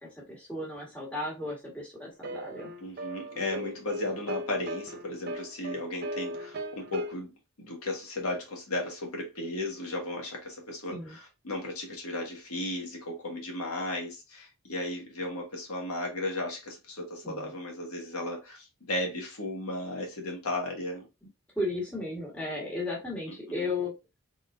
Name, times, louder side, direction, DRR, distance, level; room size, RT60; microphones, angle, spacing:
voice 1, 0.0-2.7 10.9-11.2 17.2-17.5 21.5-23.9, left 2 dB, 5° left, 1.6 m, -35 dB
sound 1, 2.2-7.1, right 1 dB, 45° right, 0.5 m, -38 dB
voice 2, 2.8-7.3 7.6-21.1 23.5-23.7, left 2 dB, 85° left, 1.6 m, -35 dB
3.8 x 3.8 x 2.6 m
head